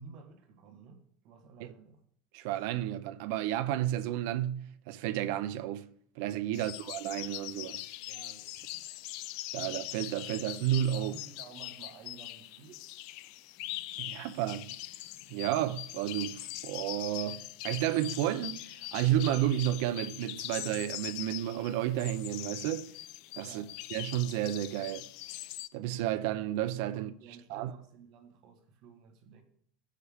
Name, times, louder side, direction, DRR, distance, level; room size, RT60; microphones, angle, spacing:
voice 1, 0.0-2.0 6.5-6.8 8.1-8.8 10.9-12.8 13.1-13.4 23.4-23.8 26.9-29.4, right 5 dB, 50° right, 1.5 m, -53 dB
voice 2, 2.3-5.9 6.2-7.8 9.5-11.1 14.0-14.7 15.3-22.9 23.3-23.6 23.9-25.1 25.7-27.1 27.5-27.7, right 12 dB, 65° right, 0.5 m, -32 dB
sound 1, 6.5-25.7, left 16 dB, 60° left, 0.4 m, -42 dB
16.5 x 6.6 x 3.5 m
cardioid pair, 165°, 0 cm